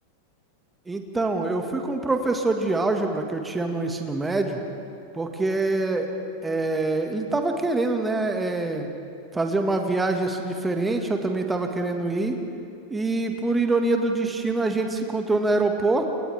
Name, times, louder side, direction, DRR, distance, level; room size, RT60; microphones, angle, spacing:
voice 1, 0.9-4.6 5.1-6.1 6.4-8.9 9.3-12.4 12.9-16.1, right 2 dB, 10° right, 4 dB, 1.8 m, -25 dB
30.0 x 28.5 x 3.5 m, 2.6 s
figure-of-eight pair, 90°, 0 cm